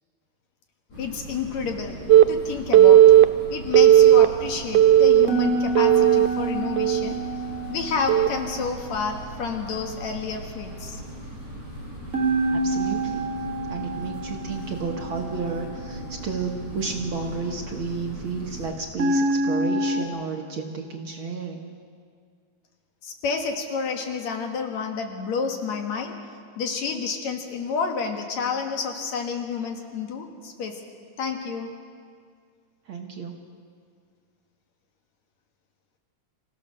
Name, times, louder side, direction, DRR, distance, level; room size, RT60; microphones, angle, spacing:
sound 1, 0.9-18.7, equal, 85° left, 9.4 m, -39 dB
voice 1, 1.0-2.0 2.3-3.0 3.5-7.2 7.7-11.0 23.0-26.1 26.6-30.8 31.2-31.7, left 5 dB, 70° left, 3 dB, 2.9 m, -30 dB
Telephone, 2.1-2.2 2.7-3.2 3.7-4.3 4.7-5.3 5.8-6.3 6.8-7.1 8.1-8.3, right 12 dB, 85° right, 2.1 m, -13 dB
sound 2, 5.3-9.4 12.1-16.3 19.0-20.0, right 2 dB, 30° right, 2.8 m, -28 dB
voice 2, 12.5-13.3 13.7-21.7 32.9-33.4, right 4 dB, 55° right, 2 dB, 1.7 m, -32 dB
27.0 x 15.5 x 6.6 m, 2.1 s
omnidirectional pair, 3.4 m